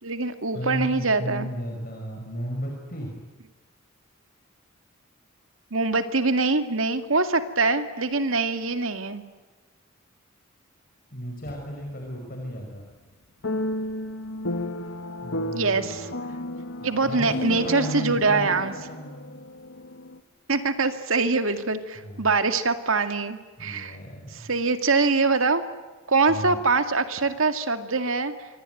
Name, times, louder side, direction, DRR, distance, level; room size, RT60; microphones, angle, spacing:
voice 1, 0.0-1.5 5.7-9.2 15.5-16.1 16.8-18.7 20.5-24.0 24.3-25.6 26.1-28.5, right 3 dB, 70° right, 9 dB, 2.2 m, -24 dB
voice 2, 0.5-3.1 11.1-12.9 15.2-15.7 16.8-19.4 22.0-22.3 23.6-24.4 26.3-26.6, equal, 45° left, 1 dB, 5.3 m, -34 dB
sound 1, 11.5-11.9 13.4-20.2, left 1 dB, 70° left, 1.7 m, -33 dB
27.0 x 23.5 x 9.3 m, 1.3 s
head